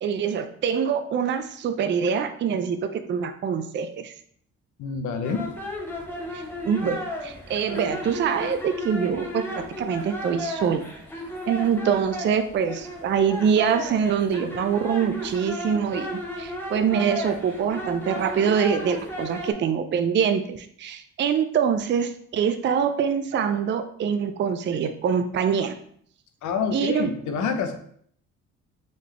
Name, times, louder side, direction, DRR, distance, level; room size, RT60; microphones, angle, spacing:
voice 1, 0.0-4.1 6.3-10.9 11.5-25.7 26.7-27.1, right 7 dB, 40° right, 8 dB, 0.4 m, -24 dB
voice 2, 4.8-5.4 26.4-27.7, left 5 dB, 75° left, 6 dB, 0.7 m, -27 dB
sound 1, 5.2-19.5, left 1 dB, 5° left, 1.0 m, -34 dB
3.9 x 3.3 x 3.2 m, 0.63 s
cardioid pair, 90°, 30 cm